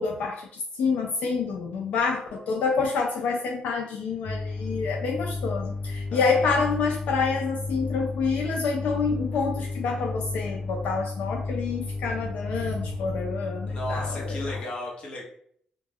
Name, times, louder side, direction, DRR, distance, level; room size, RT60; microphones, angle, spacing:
voice 1, 0.0-14.5, left 4 dB, 70° left, 1 dB, 0.3 m, -28 dB
sound 1, 4.2-14.6, left 3 dB, 25° right, 1.1 m, -32 dB
voice 2, 6.1-6.4 13.7-15.2, left 1 dB, 40° left, -2 dB, 0.7 m, -35 dB
2.2 x 2.0 x 3.3 m, 0.64 s
cardioid pair, 175°, 3 cm